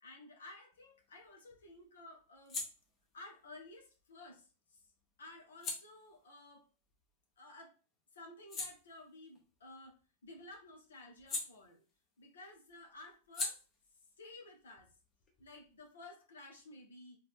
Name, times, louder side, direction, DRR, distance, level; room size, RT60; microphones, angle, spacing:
voice 1, 0.0-2.6 3.1-4.9 5.2-6.7 7.4-7.8 8.1-10.0 10.2-11.8 12.2-13.6 14.2-14.9 15.4-17.2, left 2 dB, 65° left, 2 dB, 1.3 m, -54 dB
sound 1, 0.7-7.6 8.0-12.2 12.5-15.9, left 3 dB, 30° left, 1.3 m, -47 dB
4.0 x 3.5 x 3.5 m, 0.34 s
figure-of-eight pair, 90°, 0 cm